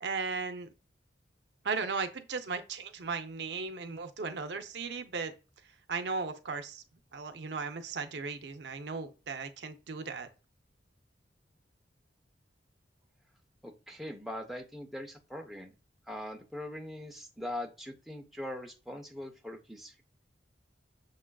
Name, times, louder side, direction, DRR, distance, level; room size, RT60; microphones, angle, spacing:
voice 1, 0.0-0.7 1.6-5.3 5.9-6.8 7.1-10.3, right 4 dB, 65° right, 0.5 m, -36 dB
voice 2, 13.6-15.7 16.1-20.0, left 1 dB, ahead, 0.4 m, -41 dB
6.4 x 2.4 x 2.2 m
head